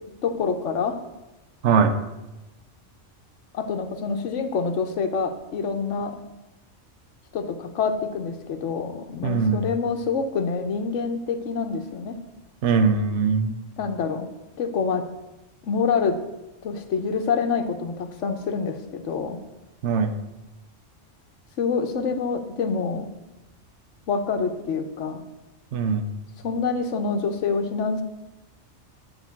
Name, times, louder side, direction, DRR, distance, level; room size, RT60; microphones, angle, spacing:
voice 1, 0.2-1.0 3.5-6.2 7.3-12.2 13.8-14.3 14.6-15.1 15.6-16.2 16.6-19.4 21.6-23.1 24.1-25.2 26.4-28.0, left 5 dB, 75° left, 7 dB, 1.2 m, -26 dB
voice 2, 1.6-2.0 9.2-9.6 12.6-13.6 19.8-20.1 25.7-26.1, right 5 dB, 70° right, 8 dB, 1.0 m, -21 dB
10.5 x 3.7 x 7.0 m, 1.0 s
omnidirectional pair, 1.3 m